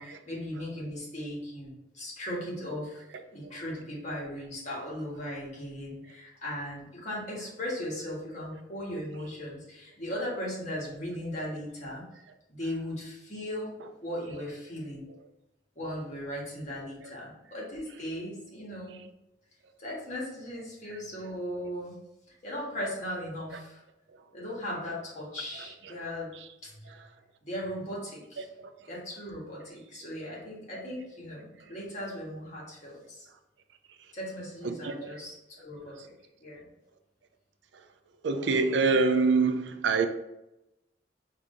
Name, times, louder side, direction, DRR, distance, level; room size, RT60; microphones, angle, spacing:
voice 1, 0.0-3.0 3.3-12.0 12.5-13.7 14.0-15.0 15.7-19.0 19.8-22.0 22.4-23.8 24.3-26.3 26.6-27.0 27.4-28.5 28.9-33.2 34.1-35.9 36.4-36.6, equal, 40° left, 1.7 m, -37 dB
voice 2, 28.4-28.9 34.6-35.2 38.2-40.1, right 4 dB, 85° right, 0.4 m, -27 dB
4.8 x 2.7 x 3.8 m
head